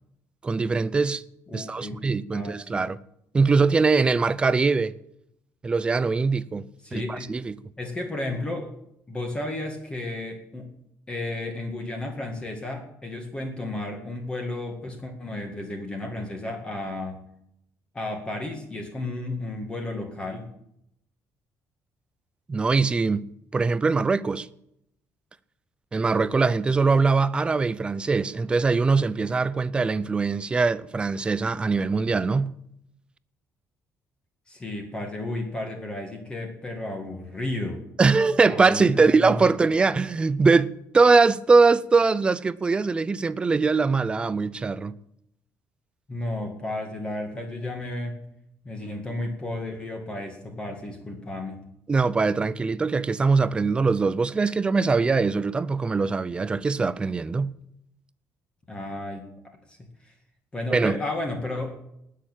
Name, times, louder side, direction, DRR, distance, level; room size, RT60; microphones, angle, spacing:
voice 1, 0.4-1.2 1.5-3.0 3.3-5.0 5.6-7.6 22.5-23.3 23.5-24.5 25.9-32.5 38.0-44.9 51.9-57.5 60.7-61.0, right 4 dB, 15° right, 0.5 m, -22 dB
voice 2, 1.5-2.0 2.3-2.9 6.8-7.3 7.8-8.7 9.1-10.7 11.1-17.2 17.9-20.5 34.5-37.8 38.4-39.4 46.1-48.2 48.6-51.6 58.7-59.3 59.7-59.8 60.0-60.1 60.5-61.7, left 2 dB, 15° left, 2.0 m, -33 dB
19.0 x 6.6 x 9.0 m
cardioid pair, 175°, 6 cm